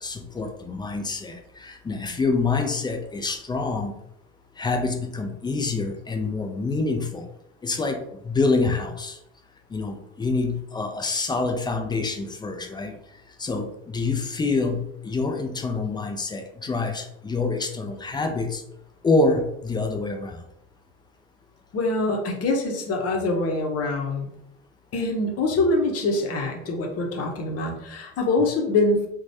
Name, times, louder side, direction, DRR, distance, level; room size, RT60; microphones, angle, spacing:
voice 1, 0.0-3.9 4.6-7.3 7.6-9.2 9.7-13.0 13.4-18.6 19.0-20.4, left 3 dB, 15° left, 5 dB, 0.3 m, -26 dB
voice 2, 21.7-24.3 24.9-29.1, left 2 dB, 40° left, 2 dB, 0.8 m, -24 dB
3.0 x 2.3 x 2.6 m, 0.79 s
hypercardioid pair, 70°, 36 cm